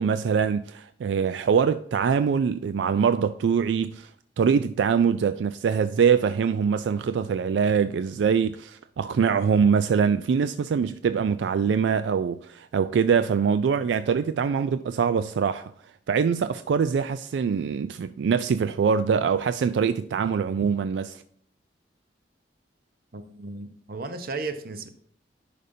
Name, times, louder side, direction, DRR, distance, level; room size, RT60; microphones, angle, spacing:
voice 1, 0.0-4.1 4.4-15.7 16.1-21.2, right 6 dB, 85° right, 0.3 m, -23 dB
voice 2, 23.1-24.9, right 3 dB, 55° right, 0.8 m, -35 dB
10.5 x 5.1 x 2.7 m
head